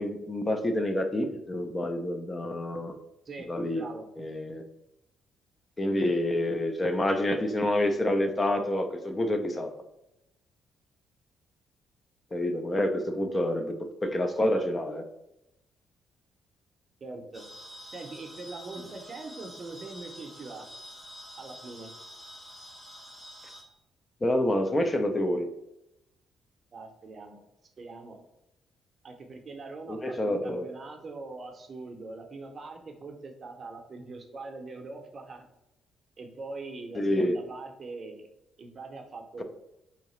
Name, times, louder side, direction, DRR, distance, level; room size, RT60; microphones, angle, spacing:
voice 1, 0.0-2.9 3.5-3.8 4.2-4.6 5.8-9.7 12.3-13.7 14.0-15.0 24.2-25.5 29.9-30.7 36.9-37.3, left 1 dB, 25° left, 6 dB, 0.4 m, -28 dB
voice 2, 3.3-4.1 17.0-17.5 17.9-20.7 21.4-21.9 26.7-27.4 27.8-28.2 29.0-35.5 36.2-38.3 38.6-39.4, right 3 dB, 40° right, 4 dB, 0.6 m, -42 dB
sound 1, 17.3-23.6, equal, 5° left, 0.9 m, -47 dB
3.6 x 2.8 x 3.0 m, 0.87 s
cardioid pair, 90°, 0 cm